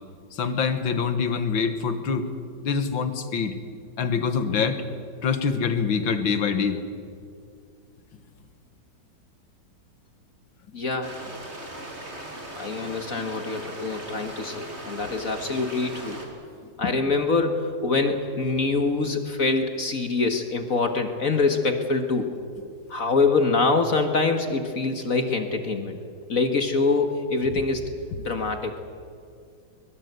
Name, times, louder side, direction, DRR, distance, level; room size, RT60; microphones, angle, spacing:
voice 1, 0.3-2.3 2.6-3.5 4.0-4.8 5.2-6.8, left 6 dB, 80° left, 9 dB, 2.3 m, -25 dB
voice 2, 10.7-11.2 12.6-16.3 16.8-22.3 22.9-26.0 26.3-28.8, left 3 dB, 45° left, 6 dB, 1.8 m, -25 dB
sound 1, 11.0-16.3, right 1 dB, 35° right, 3.7 m, -39 dB
23.0 x 22.0 x 8.1 m, 2.3 s
omnidirectional pair, 2.1 m